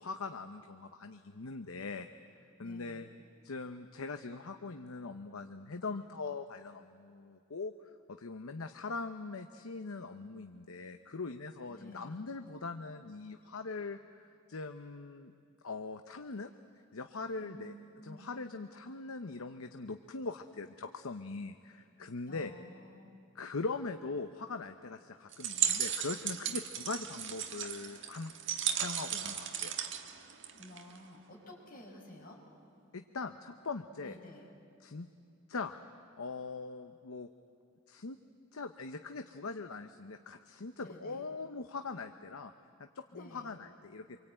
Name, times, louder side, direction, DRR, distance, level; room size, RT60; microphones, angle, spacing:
voice 1, 0.0-2.1 2.6-3.1 3.4-7.7 8.1-15.3 15.6-16.5 16.9-17.7 18.0-22.5 23.3-28.3 28.7-29.8 32.9-34.2 34.8-35.1 35.5-35.7 36.2-37.3 37.9-38.2 38.5-42.5 42.8-44.2, left 3 dB, 80° left, 7 dB, 0.9 m, -41 dB
voice 2, 2.6-3.1 11.7-12.2 17.4-18.3 22.2-23.1 30.5-32.4 34.0-34.5 40.8-41.2 43.1-43.5, equal, 40° left, -1 dB, 5.7 m, -52 dB
sound 1, 25.3-31.0, right 9 dB, 55° right, 1.5 m, -35 dB
26.0 x 24.0 x 8.9 m, 2.5 s
head